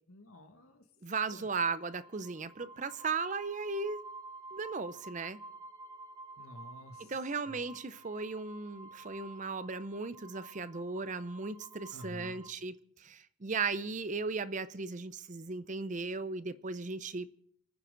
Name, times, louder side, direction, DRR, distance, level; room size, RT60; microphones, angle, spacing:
voice 1, 0.1-0.8 1.3-1.5 6.4-7.2 7.5-7.6 11.9-12.4, left 1 dB, 90° left, 2.1 m, -50 dB
voice 2, 1.0-4.0 4.5-5.4 7.0-17.3, right 4 dB, 35° right, 0.6 m, -36 dB
sound 1, 1.7-12.5, right 2 dB, 15° right, 1.2 m, -51 dB
29.0 x 10.0 x 3.9 m
head